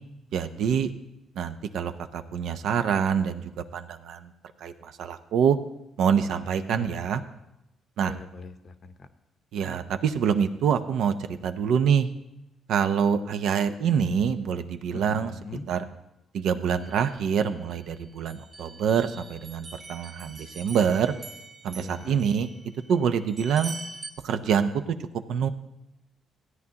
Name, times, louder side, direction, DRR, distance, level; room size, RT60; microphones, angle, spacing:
voice 1, 0.3-0.9 1.4-4.3 4.6-5.6 6.0-7.2 8.0-8.1 9.5-12.1 12.7-15.3 15.7-15.8 16.3-21.1 21.6-22.5 22.9-23.7 24.2-24.7 25.3-25.5, right 7 dB, 75° right, 9 dB, 0.6 m, -25 dB
voice 2, 6.6-6.9 8.1-9.1 14.9-15.7 21.8-22.2, left 4 dB, 50° left, 10 dB, 0.7 m, -41 dB
sound 1, 16.8-17.8 18.3-24.1, right 3 dB, 35° right, 1.5 m, -44 dB
16.0 x 9.4 x 2.8 m, 0.89 s
cardioid pair, 90°, 0 cm